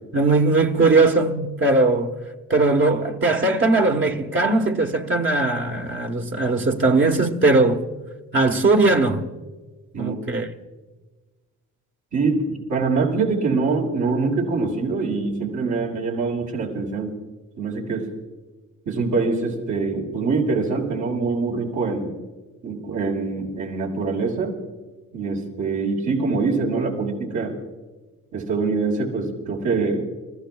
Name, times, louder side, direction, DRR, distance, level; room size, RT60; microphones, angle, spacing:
voice 1, 0.1-2.1 2.5-7.8 8.3-9.2 10.0-10.5, right 3 dB, 40° right, 1.4 m, -19 dB
voice 2, 12.1-17.2 17.6-18.0 18.9-22.1 22.6-24.6 25.1-27.5 28.3-30.0, right 4 dB, 75° right, 5.5 m, -24 dB
30.0 x 15.0 x 2.4 m
cardioid pair, 90°, 30 cm